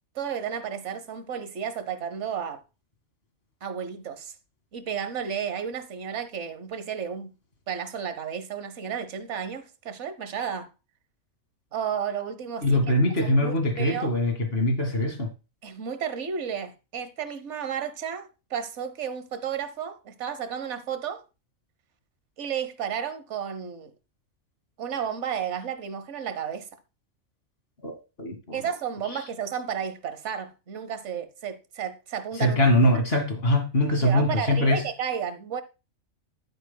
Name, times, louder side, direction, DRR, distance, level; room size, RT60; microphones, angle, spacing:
voice 1, 0.1-2.6 3.6-4.3 4.7-7.3 7.7-10.7 11.7-12.8 13.2-14.1 15.6-21.2 22.4-23.9 24.8-26.7 28.5-32.6 34.0-35.6, right 8 dB, 60° right, 1.3 m, -32 dB
voice 2, 12.6-15.3 27.8-27.9 28.2-28.6 32.4-34.8, left 1 dB, 45° left, 2.2 m, -22 dB
11.5 x 9.2 x 2.2 m
omnidirectional pair, 1.4 m